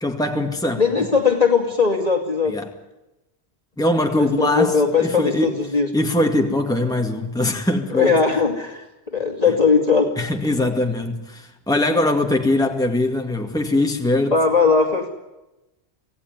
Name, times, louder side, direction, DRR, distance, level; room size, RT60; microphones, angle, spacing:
voice 1, 0.0-1.1 2.5-2.7 3.8-5.6 5.9-8.1 10.2-14.4, left 1 dB, 5° left, 2.1 m, -22 dB
voice 2, 0.8-2.5 4.2-5.9 7.9-8.8 9.1-10.1 14.3-15.1, left 5 dB, 35° left, 2.4 m, -19 dB
26.0 x 17.0 x 9.6 m
omnidirectional pair, 1.1 m